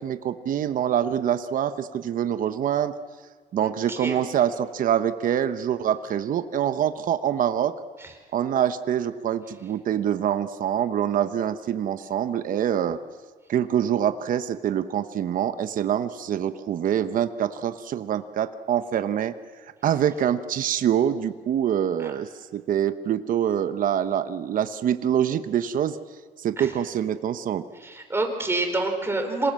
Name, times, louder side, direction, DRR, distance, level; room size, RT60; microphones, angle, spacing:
voice 1, 0.0-2.9 3.5-7.7 8.3-13.0 13.5-19.3 19.8-26.0 26.4-27.6, right 9 dB, 55° right, 10 dB, 1.0 m, -25 dB
voice 2, 3.6-4.2 8.0-8.1 22.0-22.1 26.6-26.7 27.8-29.5, right 2 dB, 15° right, 4 dB, 4.3 m, -27 dB
26.5 x 18.5 x 7.6 m, 1.5 s
cardioid pair, 110°, 17 cm